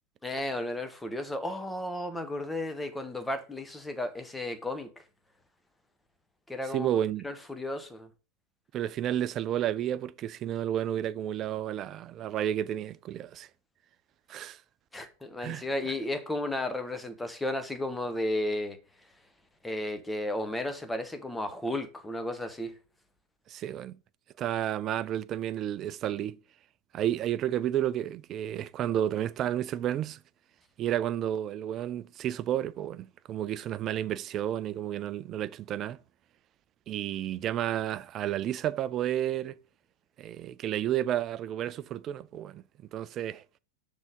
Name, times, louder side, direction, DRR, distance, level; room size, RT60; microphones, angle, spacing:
voice 1, 0.2-4.9 6.5-6.9 7.2-8.1 14.9-18.8 19.6-22.7, left 1 dB, 5° left, 1.0 m, -33 dB
voice 2, 6.7-7.3 8.7-13.5 14.3-14.6 15.4-15.9 23.5-24.0 24.4-26.4 26.9-30.2 30.8-36.0 36.9-39.6 40.2-42.6 42.9-43.4, right 11 dB, 30° right, 0.4 m, -31 dB
6.2 x 3.6 x 5.1 m
figure-of-eight pair, 90°, 0 cm